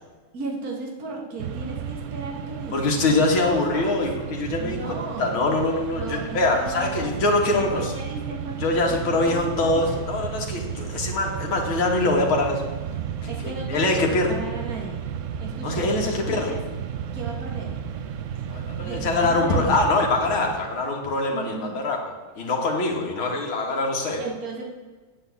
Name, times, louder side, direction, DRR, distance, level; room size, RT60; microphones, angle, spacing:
voice 1, 0.3-4.0 4.6-5.3 5.9-7.3 7.6-9.9 13.3-15.1 15.4-16.6 17.1-17.8 18.8-19.8 21.3-21.8 24.2-24.6, right 3 dB, 45° right, 0 dB, 2.4 m, -35 dB
Mechanisms, 1.4-20.8, right 8 dB, 80° right, 0.7 m, -33 dB
voice 2, 2.7-4.8 5.2-7.9 8.6-12.6 13.2-14.3 15.6-16.5 18.5-22.0 22.4-24.2, left 2 dB, 90° left, 0 dB, 2.5 m, -23 dB
8.3 x 8.1 x 8.4 m, 1.3 s
omnidirectional pair, 2.2 m